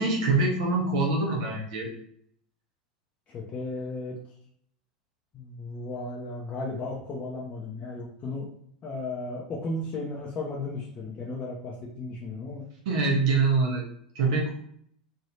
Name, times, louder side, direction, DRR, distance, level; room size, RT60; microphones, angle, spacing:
voice 1, 0.0-1.9 12.8-13.9 14.1-14.5, right 3 dB, 65° right, -1 dB, 1.1 m, -24 dB
voice 2, 3.3-4.2 5.3-8.5 8.8-12.6, left 2 dB, 35° left, -4 dB, 0.7 m, -35 dB
3.2 x 2.8 x 2.7 m, 0.66 s
hypercardioid pair, 90°, 4 cm